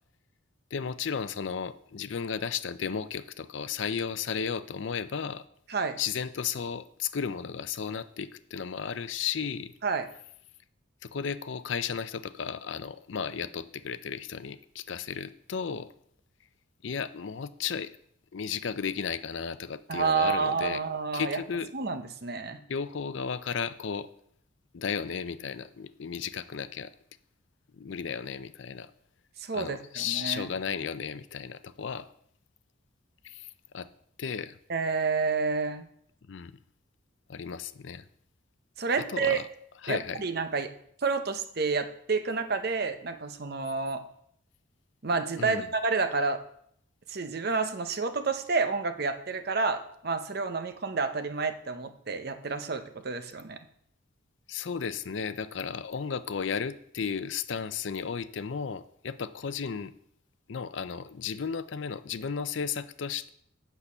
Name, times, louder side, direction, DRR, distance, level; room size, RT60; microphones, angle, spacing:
voice 1, 0.7-5.4 6.0-9.7 11.0-15.9 16.8-17.9 18.3-20.8 21.1-21.7 22.7-24.1 24.7-26.9 27.8-28.9 29.5-32.1 33.2-33.5 33.7-33.9 34.2-34.6 36.3-36.5 37.3-38.0 39.1-39.5 39.8-40.2 45.4-45.7 54.5-59.9 60.5-63.3, left 6 dB, 65° left, 14 dB, 0.5 m, -34 dB
voice 2, 19.9-21.4 21.7-22.6 29.4-30.5 34.7-35.9 38.8-39.4 39.9-40.7 41.0-44.0 45.0-46.4 47.1-53.6, right 4 dB, 50° right, 8 dB, 0.8 m, -29 dB
8.4 x 6.8 x 5.6 m, 0.68 s
head